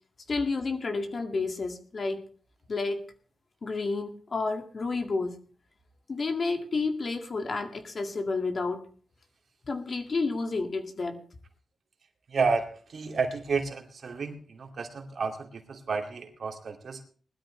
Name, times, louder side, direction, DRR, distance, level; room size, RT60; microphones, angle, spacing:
voice 1, 0.3-2.2 2.7-3.0 3.6-5.3 6.1-8.8 9.7-11.2, left 3 dB, 45° left, 6 dB, 2.0 m, -30 dB
voice 2, 12.3-17.0, right 4 dB, 60° right, 4 dB, 2.4 m, -31 dB
20.0 x 12.5 x 3.2 m, 0.42 s
wide cardioid pair, 115°, 0 cm